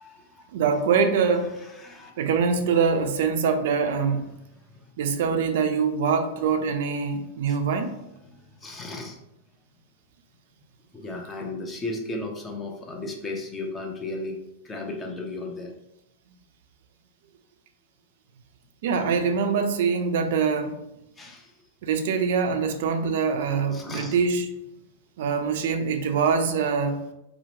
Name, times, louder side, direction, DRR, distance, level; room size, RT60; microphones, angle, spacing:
voice 1, 0.0-0.5 1.7-2.2 4.5-4.9 7.5-7.6 8.2-9.2 10.9-14.4 14.6-15.7 21.2-21.5 23.7-24.1, left 2 dB, 20° left, 1 dB, 0.6 m, -35 dB
voice 2, 0.5-1.5 2.2-4.3 5.0-8.0 18.8-20.8 21.8-24.5 25.2-27.0, right 5 dB, 65° right, 6 dB, 0.3 m, -24 dB
2.9 x 2.1 x 2.8 m, 0.86 s
hypercardioid pair, 110°, 0 cm